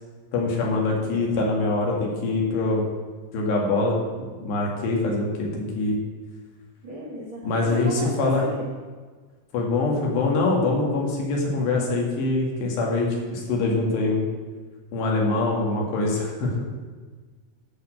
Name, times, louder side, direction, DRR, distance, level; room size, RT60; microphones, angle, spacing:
voice 1, 0.3-2.8 3.3-4.0 4.4-6.0 7.4-8.4 9.5-14.2 14.9-16.6, left 3 dB, 85° left, -1 dB, 4.2 m, -24 dB
voice 2, 6.8-8.7, right 1 dB, 70° right, -1 dB, 1.2 m, -35 dB
13.0 x 5.0 x 7.6 m, 1.4 s
omnidirectional pair, 4.8 m